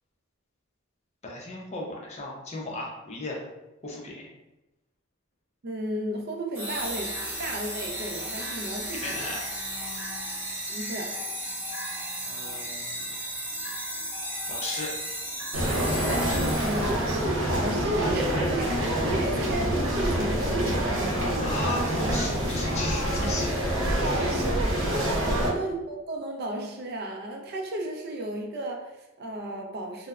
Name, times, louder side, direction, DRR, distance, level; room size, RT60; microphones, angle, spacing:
voice 1, 1.2-3.4 3.8-4.3 8.8-9.5 12.2-13.1 14.5-14.9 21.4-23.6 24.0-24.2 25.3-25.4, left 2 dB, 35° left, -2 dB, 0.5 m, -36 dB
voice 2, 5.6-9.3 10.7-11.1 16.6-21.4 24.0-30.1, right 1 dB, 50° right, 1 dB, 0.4 m, -33 dB
sound 1, 6.5-17.1, equal, 10° right, 0.6 m, -34 dB
sound 2, 15.5-25.5, equal, 90° right, 0.6 m, -26 dB
3.1 x 2.0 x 2.3 m, 0.98 s
head